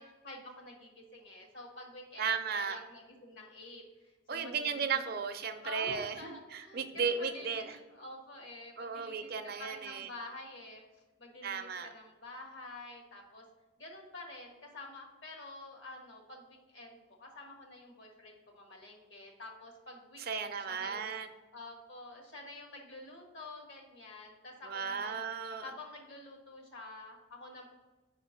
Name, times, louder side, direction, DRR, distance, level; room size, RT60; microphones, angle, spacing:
voice 1, 0.0-5.0 5.6-9.3 9.6-10.8 11.2-13.4 13.8-21.1 21.5-25.2 25.6-27.7, left 2 dB, 70° left, 1 dB, 1.6 m, -48 dB
voice 2, 2.2-2.8 4.3-7.6 8.8-10.1 11.4-11.9 20.3-21.3 24.7-25.7, right 6 dB, 55° right, 8 dB, 0.5 m, -35 dB
5.0 x 3.7 x 5.6 m, 1.2 s
head